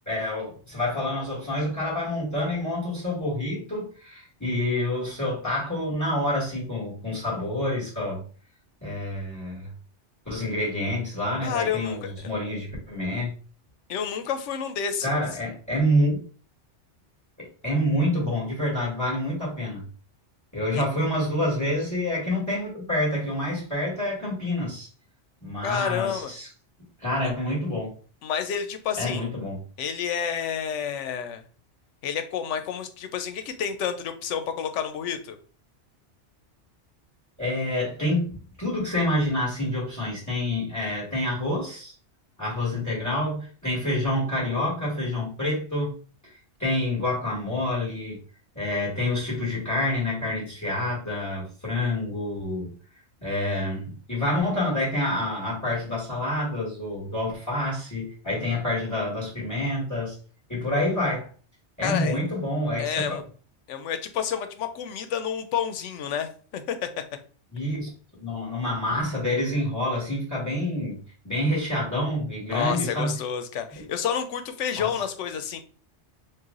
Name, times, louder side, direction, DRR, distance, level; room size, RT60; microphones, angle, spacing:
voice 1, 0.0-8.2 8.8-9.7 10.2-13.3 15.0-16.1 17.6-19.8 20.5-24.9 25.4-26.5 27.0-27.9 29.0-29.6 37.4-41.9 42.4-45.9 46.2-46.3 46.6-48.2 48.5-52.7 53.2-60.1 60.5-61.3 61.8-63.2 67.5-67.9 68.2-71.0 71.2-73.1 74.8-74.9, left 1 dB, 15° left, -5 dB, 1.6 m, -27 dB
voice 2, 11.4-12.3 13.9-15.1 20.7-20.9 25.6-26.3 28.2-29.3 29.8-31.4 32.0-35.4 61.8-62.2 62.8-63.2 63.7-66.8 72.5-75.6, left 8 dB, 85° left, 8 dB, 0.9 m, -29 dB
3.2 x 2.4 x 3.6 m, 0.40 s
omnidirectional pair, 1.2 m